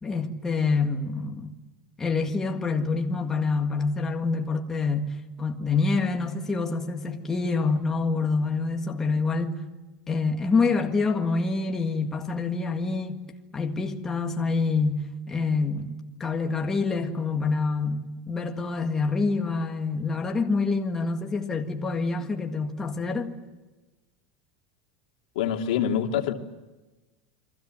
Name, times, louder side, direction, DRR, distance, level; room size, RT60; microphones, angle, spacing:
voice 1, 0.0-1.6 2.0-9.6 10.1-13.2 13.5-23.3, left 4 dB, 10° left, 1.8 m, -26 dB
voice 2, 25.3-26.3, left 9 dB, 80° left, 2.8 m, -25 dB
29.5 x 23.5 x 7.7 m
supercardioid pair, 175°, 4 cm